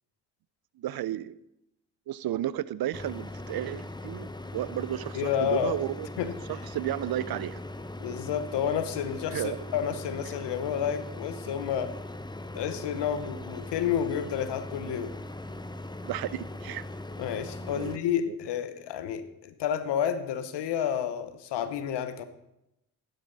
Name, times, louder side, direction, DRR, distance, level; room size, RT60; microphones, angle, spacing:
voice 1, 0.8-1.4 2.1-6.1 6.5-7.6 9.3-9.6 16.0-16.8 17.8-18.0 18.3-18.4, right 12 dB, 60° right, 19 dB, 0.6 m, -33 dB
sound 1, 2.9-18.0, left 1 dB, 10° left, 0.9 m, -40 dB
voice 2, 5.1-5.8 6.2-6.4 8.0-12.0 12.5-15.2 17.2-22.2, left 9 dB, 75° left, 12 dB, 1.0 m, -30 dB
14.5 x 12.0 x 4.1 m, 0.86 s
hypercardioid pair, 40°, 42 cm